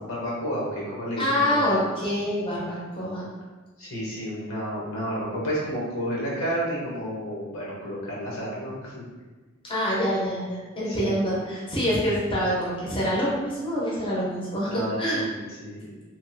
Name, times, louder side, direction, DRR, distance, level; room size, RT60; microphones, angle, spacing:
voice 1, 0.0-1.6 3.8-9.0 10.9-11.4 14.6-15.9, equal, 85° left, -5 dB, 1.0 m, -31 dB
voice 2, 1.2-3.3 9.7-15.3, equal, 25° left, -6 dB, 0.6 m, -26 dB
2.9 x 2.4 x 2.6 m, 1.3 s
head